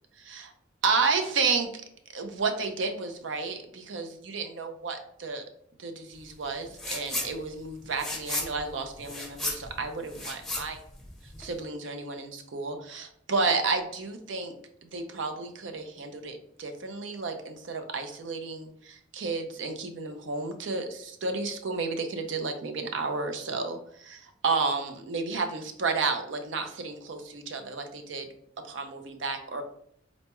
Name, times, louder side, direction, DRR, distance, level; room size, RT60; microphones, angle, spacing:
voice 1, 0.2-0.5 0.8-1.7 2.1-5.5 5.8-10.8 11.4-14.5 14.9-28.3 28.7-29.6, right 4 dB, 80° right, 5 dB, 0.5 m, -31 dB
sound 1, 6.7-7.3 7.6-11.6, left 2 dB, ahead, 0.8 m, -34 dB
4.1 x 2.2 x 2.9 m, 0.68 s
head